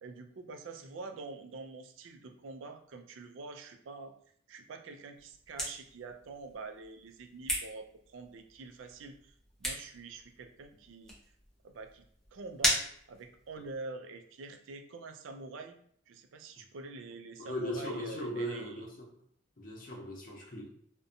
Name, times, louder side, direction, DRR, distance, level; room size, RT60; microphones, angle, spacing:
voice 1, 0.0-4.1 4.5-9.3 9.6-11.1 11.6-12.1 12.3-12.8 13.1-15.8 16.1-18.8, right 3 dB, 85° right, 6 dB, 0.4 m, -46 dB
sound 1, 5.1-13.8, equal, 5° left, 0.6 m, -39 dB
voice 2, 17.4-19.0 19.6-20.7, equal, 45° left, -1 dB, 0.6 m, -38 dB
2.6 x 2.1 x 2.5 m, 0.65 s
head